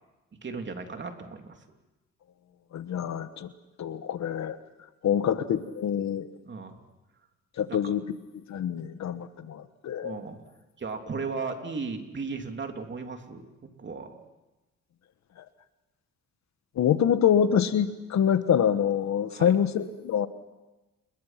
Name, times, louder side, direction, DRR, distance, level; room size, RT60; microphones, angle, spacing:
voice 1, 0.4-1.6 5.1-5.3 6.4-6.8 7.7-7.9 10.0-10.4 10.8-14.2 19.3-19.6, right 4 dB, 40° right, 4 dB, 3.2 m, -36 dB
voice 2, 2.7-3.5 3.8-4.6 5.0-6.3 7.6-8.0 8.5-10.2 16.8-20.3, left 8 dB, 65° left, 11 dB, 1.4 m, -25 dB
30.0 x 21.5 x 6.0 m, 1.1 s
cardioid pair, 90°, 30 cm